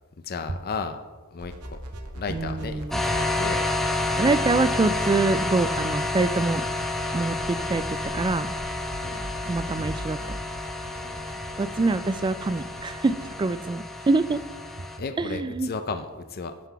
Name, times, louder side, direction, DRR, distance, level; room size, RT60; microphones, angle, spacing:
voice 1, 0.2-1.0 1.3-1.8 2.1-3.6 9.0-9.3 11.0-11.2 15.0-16.5, left 4 dB, 45° left, 8 dB, 0.5 m, -34 dB
sound 1, 1.4-13.4, right 1 dB, 80° right, 1.2 m, -41 dB
voice 2, 2.3-3.0 4.1-6.6 7.1-8.5 9.5-10.2 11.6-14.4 15.2-15.7, right 3 dB, 20° right, 14 dB, 0.3 m, -25 dB
sound 2, 2.9-15.0, left 2 dB, ahead, 0.8 m, -29 dB
11.5 x 5.9 x 4.7 m, 1.2 s
head